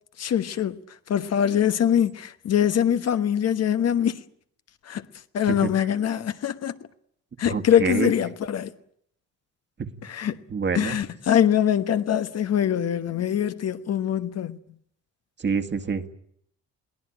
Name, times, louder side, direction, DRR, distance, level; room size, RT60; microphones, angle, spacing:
voice 1, 0.2-0.8 1.1-4.2 4.8-5.0 5.3-6.8 7.4-8.7 10.0-10.4 10.7-14.6, left 9 dB, 55° left, 1.2 m, -23 dB
voice 2, 7.4-8.1 9.8-9.9 10.5-11.0 15.4-16.1, right 5 dB, 35° right, 1.9 m, -26 dB
22.5 x 17.0 x 10.0 m
supercardioid pair, 70°, 30 cm